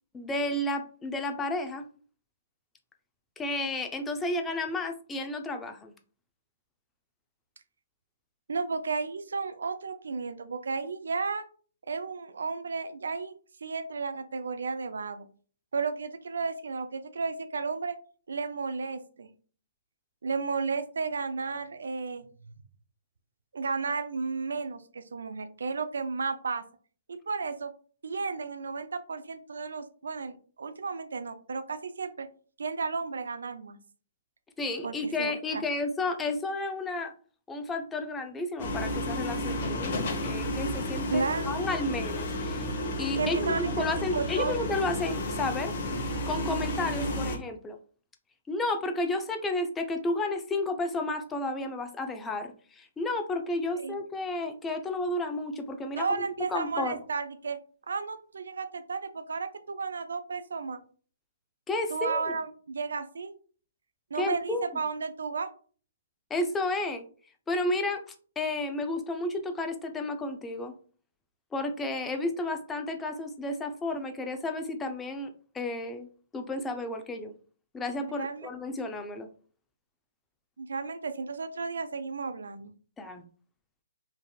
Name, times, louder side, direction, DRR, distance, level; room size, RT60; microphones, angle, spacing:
voice 1, 0.1-1.8 3.4-5.9 34.6-37.1 37.5-42.7 43.0-45.7 46.0-47.8 48.5-56.3 56.5-57.0 61.7-62.2 64.2-64.7 66.3-67.0 67.5-70.7 71.5-76.1 76.3-77.3 77.7-79.3 83.0-83.2, left 2 dB, 10° left, 6 dB, 0.4 m, -32 dB
voice 2, 8.5-11.4 11.9-13.3 13.6-15.3 15.7-18.0 18.3-19.3 20.2-22.3 23.5-26.6 27.1-27.7 28.0-32.3 32.6-33.8 34.8-35.6 41.1-41.6 43.2-44.5 53.7-54.0 56.0-57.6 57.9-60.8 61.9-63.3 64.1-65.5 78.1-78.5 80.6-82.7, right 4 dB, 75° right, 10 dB, 0.3 m, -33 dB
sound 1, 38.6-47.4, left 1 dB, 50° left, 0.7 m, -32 dB
3.3 x 2.5 x 2.3 m, 0.42 s
hypercardioid pair, 135°, 0 cm